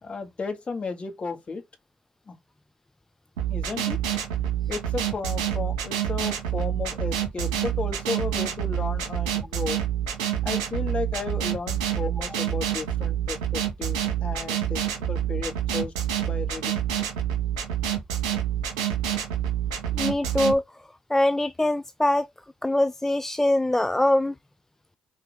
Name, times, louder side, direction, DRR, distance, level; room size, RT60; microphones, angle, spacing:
voice 1, 0.0-1.6 2.3-2.4 3.5-4.0 4.7-9.8 10.4-16.8, left 4 dB, 35° left, 2.1 m, -34 dB
sound 1, 3.4-20.5, right 10 dB, 70° right, 2.3 m, -27 dB
voice 2, 20.0-20.6 21.1-22.3 22.6-24.3, left 1 dB, 10° left, 0.4 m, -23 dB
5.9 x 4.4 x 5.0 m
figure-of-eight pair, 45°, 3 cm